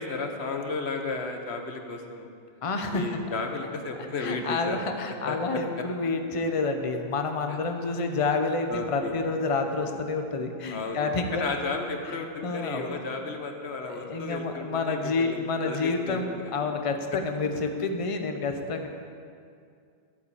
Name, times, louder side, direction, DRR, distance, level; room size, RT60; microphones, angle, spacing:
voice 1, 0.0-2.3 2.9-4.9 5.3-5.8 7.5-7.6 8.7-9.2 10.7-16.5, left 3 dB, 85° left, 4 dB, 1.4 m, -33 dB
voice 2, 2.6-3.1 4.2-11.4 12.4-12.9 13.8-18.9, left 3 dB, 35° left, 5 dB, 0.8 m, -29 dB
11.5 x 8.4 x 7.3 m, 2.3 s
omnidirectional pair, 1.1 m